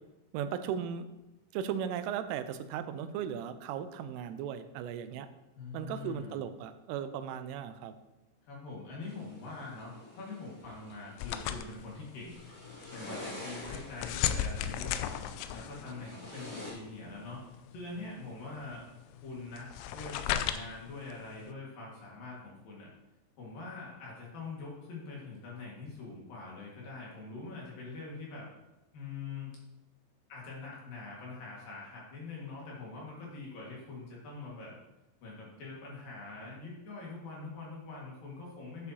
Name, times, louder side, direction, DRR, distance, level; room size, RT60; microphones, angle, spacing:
voice 1, 0.3-1.1 1.5-5.3 5.7-7.9, right 8 dB, 90° right, 10 dB, 3.2 m, -36 dB
voice 2, 5.5-6.4 8.4-12.4 12.9-15.2 15.5-17.4 17.7-18.8 19.2-22.9 23.4-28.5 28.9-29.6 30.3-34.7 35.2-38.9, left 3 dB, 55° left, -4 dB, 3.0 m, -44 dB
sound 1, 9.0-16.7, left 2 dB, 30° left, 2.0 m, -48 dB
sound 2, 11.2-21.5, left 10 dB, 85° left, 2.9 m, -37 dB
11.5 x 8.0 x 2.8 m, 1.0 s
omnidirectional pair, 5.6 m